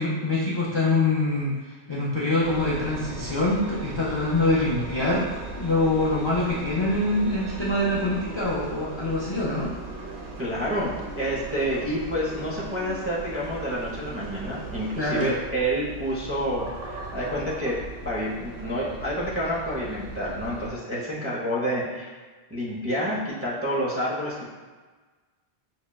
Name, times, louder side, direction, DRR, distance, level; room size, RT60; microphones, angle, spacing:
voice 1, 0.0-1.6 1.9-5.3 5.6-9.7 15.0-15.3, left 2 dB, 40° left, -6 dB, 0.4 m, -24 dB
Engine, 2.4-20.7, right 2 dB, 75° right, 0.9 m, -38 dB
voice 2, 10.4-17.8 18.0-22.2 22.5-24.5, equal, 15° right, -7 dB, 0.5 m, -28 dB
6.0 x 2.1 x 2.2 m, 1.4 s
omnidirectional pair, 1.0 m